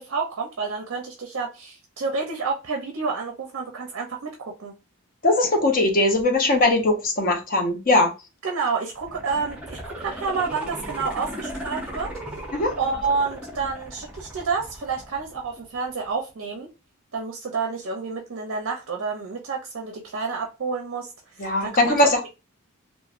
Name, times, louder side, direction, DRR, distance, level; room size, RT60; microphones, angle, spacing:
voice 1, 0.0-4.7 8.4-12.1 12.8-16.7 17.1-22.3, right 4 dB, 55° right, 0.5 m, -29 dB
voice 2, 5.2-8.1 12.5-12.7 21.4-22.3, left 2 dB, 40° left, 0.7 m, -20 dB
sound 1, 8.9-15.9 16.3-16.4, right 1 dB, 5° right, 0.6 m, -37 dB
3.0 x 2.1 x 2.4 m
head